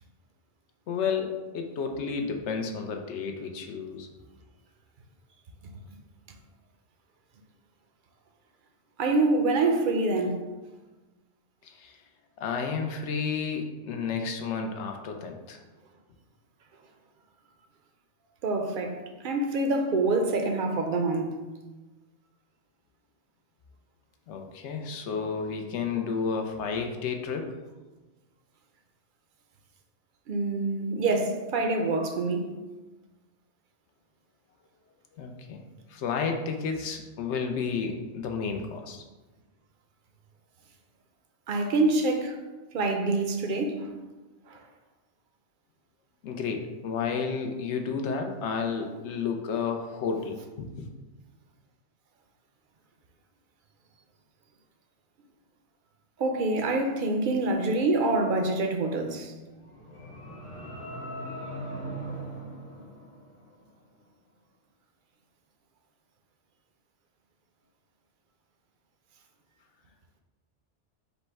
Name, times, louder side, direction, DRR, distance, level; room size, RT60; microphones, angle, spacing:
voice 1, 0.9-4.1 11.6-11.9 12.4-15.6 24.3-27.5 35.2-35.6 35.9-39.0 46.2-50.9, left 5 dB, 75° left, 0.9 m, -31 dB
voice 2, 9.0-10.4 18.4-19.0 19.2-21.3 30.3-32.5 41.5-42.4 42.7-43.9 44.5-44.6 56.2-59.3, right 2 dB, 55° right, 0.6 m, -26 dB
sound 1, 59.4-63.7, right 1 dB, 30° left, 0.8 m, -39 dB
5.3 x 2.1 x 4.6 m
omnidirectional pair, 1.2 m